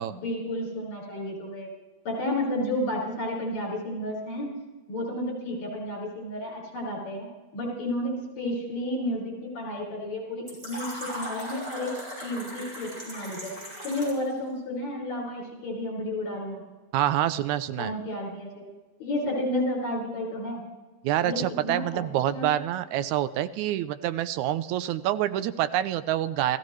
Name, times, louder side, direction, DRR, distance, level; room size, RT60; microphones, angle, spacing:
voice 1, 0.1-1.7 2.0-4.5 4.9-7.3 7.5-11.9 12.2-13.5 13.8-16.6 17.8-18.7 19.0-20.6 21.2-21.8 22.3-22.5, left 1 dB, 70° left, -2 dB, 6.3 m, -31 dB
Fill (with liquid), 10.5-14.3, equal, 25° right, 5.9 m, -38 dB
voice 2, 16.9-17.9 21.0-26.6, right 12 dB, 80° right, 13 dB, 2.0 m, -27 dB
28.5 x 15.0 x 3.2 m, 1.2 s
omnidirectional pair, 3.4 m